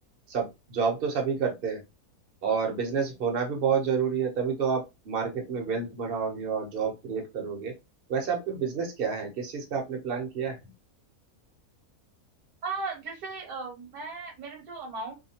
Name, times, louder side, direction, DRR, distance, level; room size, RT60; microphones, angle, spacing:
voice 1, 0.3-1.8 2.4-7.7 8.1-10.6, right 6 dB, 45° right, 1 dB, 0.8 m, -29 dB
voice 2, 12.6-15.1, right 3 dB, 65° right, 0 dB, 1.2 m, -36 dB
2.7 x 2.2 x 2.7 m, 0.23 s
omnidirectional pair, 1.6 m